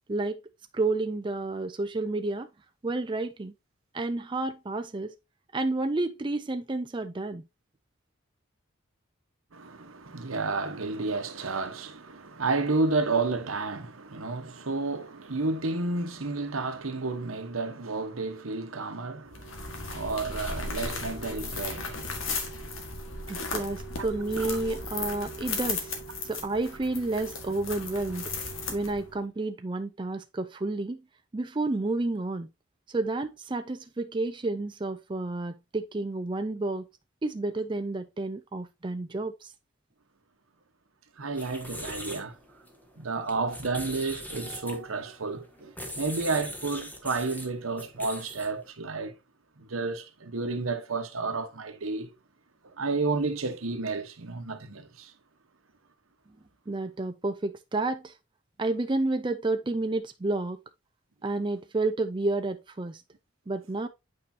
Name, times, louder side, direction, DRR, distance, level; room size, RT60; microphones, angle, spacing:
voice 1, 0.1-0.4 0.7-2.5 2.8-3.5 3.9-5.1 5.5-7.4 23.3-28.3 28.7-31.0 31.3-32.5 32.9-36.8 37.2-39.5 56.7-58.1 58.6-60.6 61.2-63.0 63.5-63.9, right 2 dB, 25° right, 0.4 m, -30 dB
voice 2, 9.5-22.1 24.0-24.1 24.4-24.6 41.2-42.3 43.0-49.2 49.6-52.1 52.8-55.1, right 3 dB, 85° right, 1.1 m, -31 dB
sound 1, 19.3-29.2, left 3 dB, 80° left, 1.7 m, -36 dB
sound 2, 41.2-48.7, equal, 10° left, 1.1 m, -41 dB
8.5 x 4.8 x 2.7 m
head